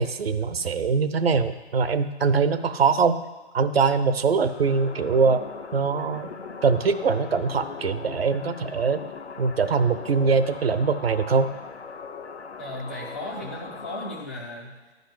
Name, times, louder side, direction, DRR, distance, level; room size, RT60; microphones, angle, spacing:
voice 1, 0.0-3.2 3.5-5.4 5.7-6.3 6.6-9.0 9.4-11.5, right 5 dB, 60° right, 11 dB, 0.8 m, -22 dB
sound 1, 4.5-14.3, left 5 dB, 75° left, 0.9 m, -39 dB
voice 2, 12.6-14.9, left 1 dB, 15° left, -5 dB, 0.4 m, -36 dB
9.9 x 5.3 x 8.0 m, 1.2 s
figure-of-eight pair, 135°, 34 cm